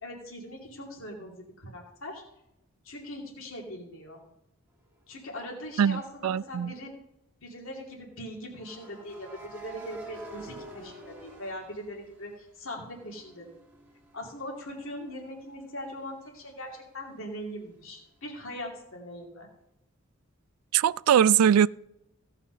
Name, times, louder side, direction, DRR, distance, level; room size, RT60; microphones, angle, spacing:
voice 1, 0.0-2.2 2.8-4.2 5.1-6.9 7.4-13.6 14.1-19.5, equal, 70° left, 2.7 m, -41 dB
sound 1, 5.3-5.5 8.6-12.5 12.9-16.4, right 2 dB, 10° right, 1.9 m, -48 dB
voice 2, 5.8-6.7 20.7-21.7, right 9 dB, 85° right, 0.3 m, -22 dB
16.5 x 5.8 x 5.5 m
head